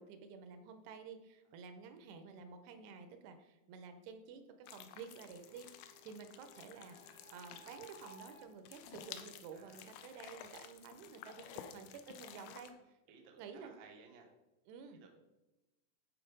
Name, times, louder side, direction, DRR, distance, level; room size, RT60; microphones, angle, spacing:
voice 1, 0.0-13.0 13.4-13.7 14.7-15.0, right 6 dB, 90° right, 8 dB, 2.7 m, -52 dB
sound 1, 4.7-12.7, left 9 dB, 80° left, 2.3 m, -53 dB
Printer, 5.3-9.9, right 2 dB, ahead, 1.4 m, -61 dB
voice 2, 9.5-9.8 13.1-14.3 15.0-15.1, right 5 dB, 65° right, 1 dB, 1.8 m, -58 dB
10.0 x 4.6 x 4.9 m, 1.0 s
omnidirectional pair, 4.7 m